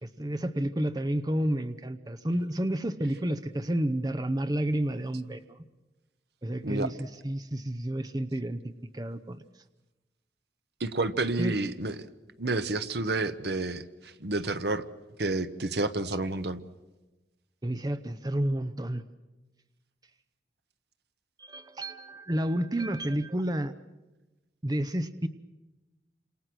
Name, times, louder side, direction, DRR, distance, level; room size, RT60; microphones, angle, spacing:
voice 1, 0.0-5.6 6.4-9.4 11.4-11.6 17.6-19.0 21.4-23.7 24.6-25.3, right 1 dB, 20° right, 11 dB, 0.8 m, -30 dB
voice 2, 10.8-11.9 12.4-14.8 15.2-16.6, right 2 dB, 65° right, 11 dB, 1.1 m, -30 dB
29.0 x 27.0 x 6.3 m, 1.1 s
head